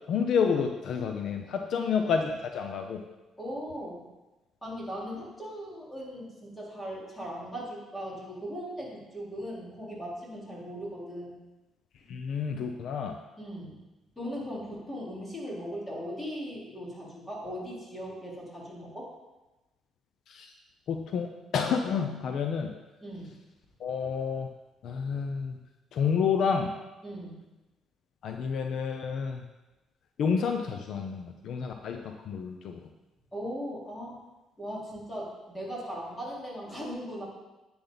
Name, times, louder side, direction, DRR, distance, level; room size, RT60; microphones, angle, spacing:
voice 1, 0.1-3.0 12.1-13.2 20.3-20.5 20.9-22.7 23.8-24.5 24.8-25.6 25.9-26.7 28.2-29.4 30.2-32.9, left 6 dB, 60° left, 5 dB, 0.8 m, -29 dB
voice 2, 3.4-4.1 4.6-11.4 13.4-13.8 14.2-19.1 23.0-23.3 27.0-27.4 33.3-34.2 34.6-37.2, equal, 10° left, -5 dB, 4.2 m, -38 dB
10.5 x 9.6 x 4.1 m, 1.1 s
cardioid pair, 115°, 0 cm